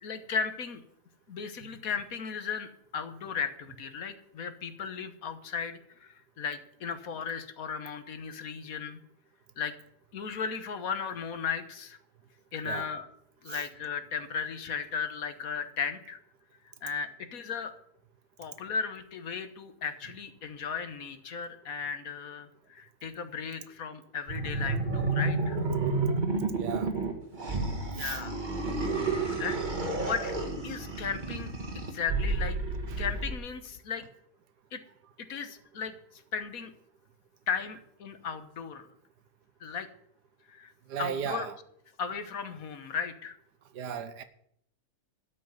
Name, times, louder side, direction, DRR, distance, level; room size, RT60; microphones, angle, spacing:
voice 1, 0.0-0.8 1.3-9.0 9.6-9.7 10.1-12.0 12.5-13.0 13.4-16.2 16.8-17.7 18.4-25.6 28.0-28.4 29.4-29.6 30.0-30.4 30.6-32.6 33.0-34.0 34.7-34.8 35.2-36.7 37.5-38.9 39.6-39.9 40.5-40.7 41.0-41.5 42.0-43.4, left 6 dB, 60° left, 1.5 m, -36 dB
sound 1, 24.3-33.4, right 3 dB, 30° right, 1.7 m, -31 dB
voice 2, 26.6-26.9 28.0-28.2 32.9-33.0 40.9-41.6 43.7-44.2, right 8 dB, 90° right, 1.5 m, -36 dB
12.5 x 5.7 x 9.3 m
omnidirectional pair, 1.7 m